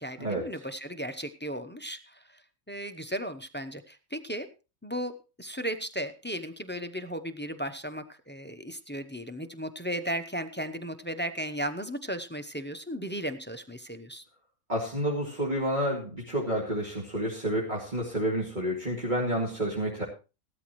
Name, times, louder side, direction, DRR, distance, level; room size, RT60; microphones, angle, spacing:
voice 1, 0.0-2.2 2.7-4.5 4.8-5.1 5.4-14.2, equal, 10° left, 10 dB, 0.6 m, -35 dB
voice 2, 14.7-20.0, right 1 dB, 35° right, -4 dB, 2.7 m, -29 dB
16.0 x 13.0 x 3.1 m, 0.32 s
omnidirectional pair, 1.5 m